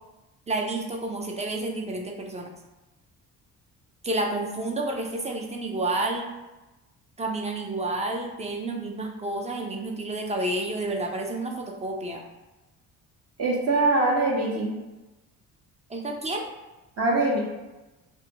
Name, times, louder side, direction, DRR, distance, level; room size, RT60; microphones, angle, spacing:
voice 1, 0.5-2.5 4.0-6.3 7.2-12.2 15.9-16.4, right 2 dB, 20° right, 1 dB, 0.5 m, -30 dB
voice 2, 13.4-14.7 17.0-17.4, right 2 dB, 40° right, -3 dB, 0.8 m, -23 dB
2.7 x 2.2 x 2.7 m, 1.1 s
supercardioid pair, 65°, 37 cm